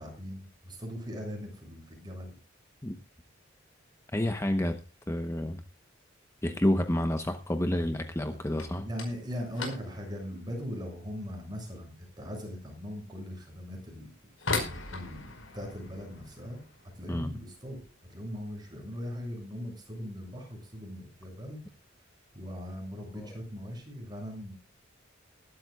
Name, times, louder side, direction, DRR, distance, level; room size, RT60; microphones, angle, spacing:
voice 1, 0.0-2.3 8.3-8.4 8.8-14.1 14.9-15.3 15.5-16.6 16.9-21.6 22.3-24.5, equal, 20° right, 2 dB, 7.1 m, -40 dB
voice 2, 4.1-4.8 5.1-5.6 6.4-8.9 17.1-17.3 23.1-23.3, left 1 dB, 15° left, 8 dB, 0.9 m, -29 dB
sound 1, 8.6-19.2 19.5-20.1 20.4-20.7 21.0-21.1 21.8-21.9 22.8-23.0 23.4-23.8, left 3 dB, 85° left, 5.0 m, -41 dB
21.5 x 12.5 x 2.4 m, 0.31 s
head